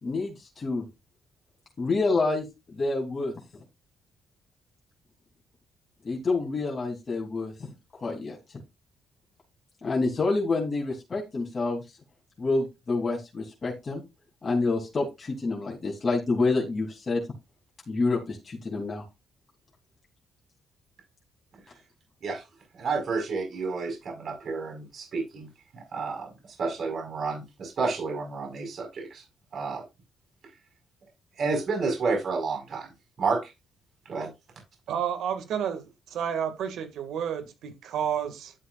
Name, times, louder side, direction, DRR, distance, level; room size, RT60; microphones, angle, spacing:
voice 1, 0.0-0.8 1.8-2.4 2.7-3.3 6.0-7.5 8.0-8.4 9.8-11.8 12.4-14.0 14.4-17.2 17.9-19.0, left 3 dB, 35° left, -2 dB, 3.0 m, -27 dB
voice 2, 22.7-25.5 25.7-26.3 26.6-29.2 29.5-29.8 31.4-32.9 33.2-33.5 34.0-34.3, right 4 dB, 55° right, 2 dB, 5.0 m, -30 dB
voice 3, 34.9-38.5, right 8 dB, 80° right, 8 dB, 2.0 m, -31 dB
11.5 x 7.9 x 2.5 m, 0.24 s
cardioid pair, 90°, 0 cm